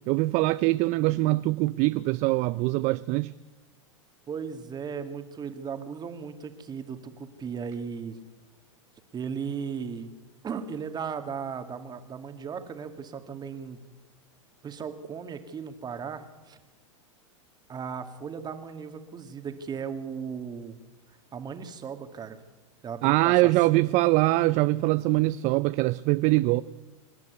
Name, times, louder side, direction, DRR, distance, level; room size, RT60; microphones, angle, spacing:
voice 1, 0.1-3.3 23.0-26.6, right 20 dB, 45° right, 0.5 m, -23 dB
voice 2, 4.3-8.2 9.1-10.1 10.4-13.8 14.6-16.6 17.7-20.8 21.3-22.4 22.8-23.8, right 6 dB, 25° right, 2.2 m, -36 dB
26.5 x 10.5 x 9.6 m
hypercardioid pair, 110°, 17 cm